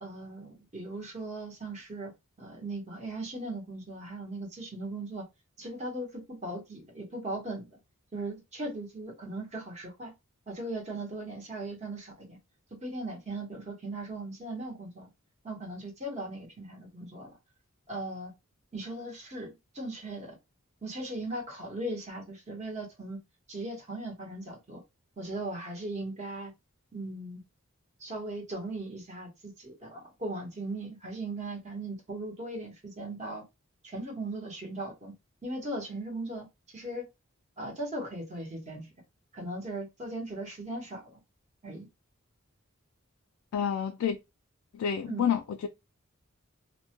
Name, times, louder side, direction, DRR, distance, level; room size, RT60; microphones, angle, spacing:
voice 1, 0.0-2.1 2.4-5.3 5.6-7.8 8.1-10.1 10.5-12.4 12.8-15.1 15.4-17.3 17.9-18.3 18.7-20.3 20.8-23.2 23.5-24.8 25.2-26.5 26.9-27.4 28.0-33.4 33.8-35.1 35.4-36.5 36.7-37.0 37.6-38.9 39.3-41.2 41.6-41.9 45.0-45.3, right 2 dB, 35° right, 0.9 m, -38 dB
voice 2, 43.5-44.2 44.7-45.7, left 8 dB, 80° left, 0.3 m, -29 dB
2.1 x 2.1 x 2.7 m
head